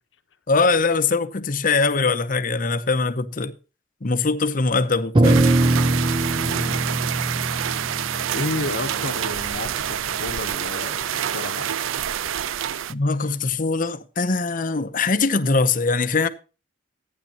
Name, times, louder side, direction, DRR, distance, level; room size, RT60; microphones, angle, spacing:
voice 1, 0.5-3.5 4.0-5.4 12.9-16.3, left 4 dB, 40° left, 0.8 m, -22 dB
sound 1, 5.1-9.7, right 2 dB, 25° right, 0.5 m, -22 dB
sound 2, 5.2-12.9, right 10 dB, 80° right, 0.4 m, -27 dB
voice 2, 6.4-6.8 8.3-11.7, left 2 dB, 65° left, 1.0 m, -31 dB
14.5 x 9.7 x 2.9 m
head